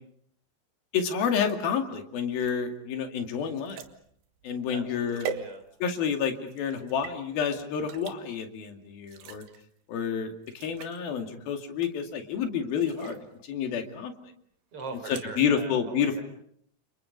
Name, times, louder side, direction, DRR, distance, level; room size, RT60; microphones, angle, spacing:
voice 1, 0.9-3.8 4.4-5.3 5.8-9.4 9.9-13.2 13.5-14.1 15.4-16.2, left 7 dB, 65° left, 5 dB, 4.1 m, -29 dB
sound 1, 2.3-6.1 6.5-7.2 7.9-8.2 9.0-9.6 10.1-10.2 10.4-11.0 11.8-12.2 12.7-13.3 14.8-15.3, right 7 dB, 80° right, 3.6 m, -41 dB
voice 2, 4.7-5.6 14.7-16.2, right 3 dB, 35° right, 6 dB, 5.1 m, -42 dB
30.0 x 29.5 x 5.3 m, 0.65 s
omnidirectional pair, 4.6 m